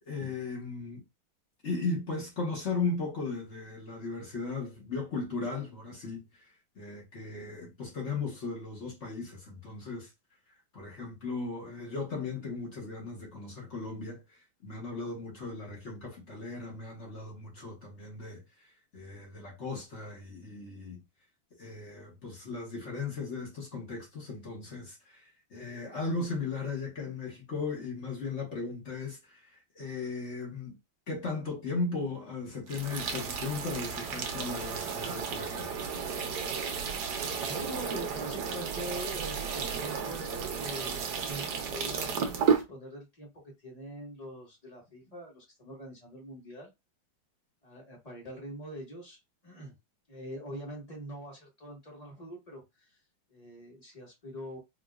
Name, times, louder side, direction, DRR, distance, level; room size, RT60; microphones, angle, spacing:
voice 1, 0.1-1.0 1.6-6.3 6.8-10.1 10.7-14.2 14.6-18.4 18.9-21.0 21.6-25.2 25.5-30.8 31.1-35.7, left 3 dB, 40° left, 1.3 m, -36 dB
sound 1, 32.7-42.6, right 6 dB, 60° right, 1.3 m, -33 dB
voice 2, 36.4-43.3 43.6-46.7 47.6-49.2 49.4-49.7 50.1-53.0 53.3-54.6, equal, 20° left, 1.3 m, -44 dB
4.8 x 2.8 x 2.4 m
omnidirectional pair, 2.4 m